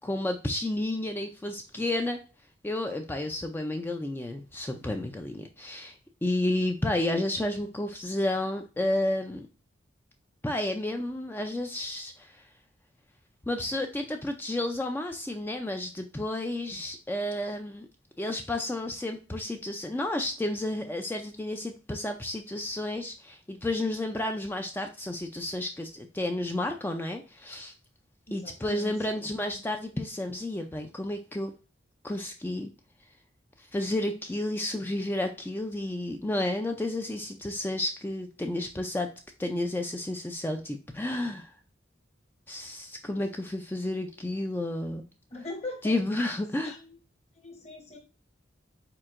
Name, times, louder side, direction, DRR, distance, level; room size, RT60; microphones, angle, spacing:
voice 1, 0.0-2.2 2.6-6.0 6.2-9.5 10.4-12.4 13.5-17.9 18.2-27.7 28.3-31.5 32.0-32.7 33.6-39.1 39.4-41.5 42.5-45.1 45.8-46.8, left 1 dB, 10° left, 5 dB, 0.3 m, -31 dB
voice 2, 28.3-29.3 45.3-45.9 46.6-47.0 47.4-48.0, left 2 dB, 35° left, 0 dB, 1.0 m, -41 dB
4.5 x 4.2 x 2.4 m, 0.34 s
head